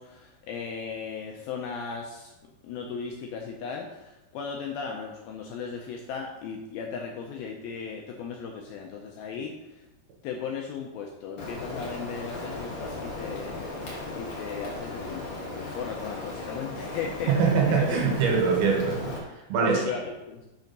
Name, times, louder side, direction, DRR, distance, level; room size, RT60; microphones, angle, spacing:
voice 1, 0.0-2.3 2.6-9.8 10.2-13.8 14.1-15.2 15.6-17.3 17.6-18.0 19.6-20.5, left 6 dB, 80° left, 1 dB, 2.2 m, -36 dB
Rain, 11.4-19.2, left 2 dB, 60° left, 1.4 m, -36 dB
voice 2, 17.3-19.8, right 5 dB, 75° right, 1 dB, 2.7 m, -24 dB
6.2 x 5.3 x 5.2 m, 0.99 s
omnidirectional pair, 4.9 m